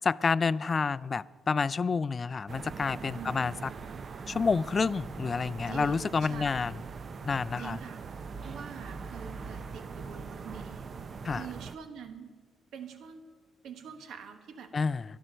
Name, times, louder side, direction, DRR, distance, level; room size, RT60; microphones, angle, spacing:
voice 1, 0.1-3.5 4.3-6.7 7.2-7.8 11.2-11.4 14.7-15.0, left 5 dB, 35° left, 0.3 m, -29 dB
sound 1, 2.5-11.8, right 5 dB, 45° right, 0.6 m, -41 dB
voice 2, 3.1-3.6 5.7-6.6 7.6-8.0 8.4-10.9 11.3-12.4 12.7-13.2 13.6-14.7, right 7 dB, 75° right, 1.3 m, -45 dB
12.5 x 11.5 x 6.5 m
cardioid pair, 100°, 0 cm